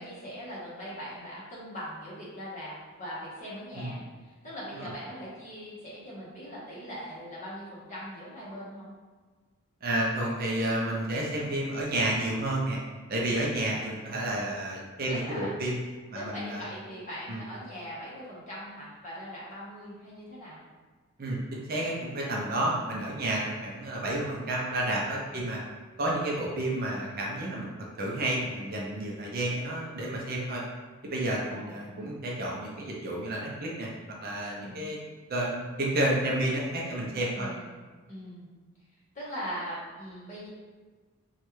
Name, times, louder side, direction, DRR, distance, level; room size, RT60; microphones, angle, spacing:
voice 1, 0.0-8.9 15.1-15.5 16.1-20.6 22.5-22.8 25.3-25.5 29.2-29.4 31.5-32.2 34.6-35.0 37.3-37.8 38.1-38.5 39.1-40.5, equal, 35° left, -8 dB, 1.0 m, -41 dB
voice 2, 9.8-12.8 13.1-15.8 16.1-16.6 17.3-17.4 21.2-25.6 26.0-27.7 28.0-30.6 31.0-33.9 34.2-35.0 35.3-37.5, right 1 dB, 45° right, -3 dB, 0.5 m, -30 dB
3.1 x 2.3 x 3.0 m, 1.4 s
head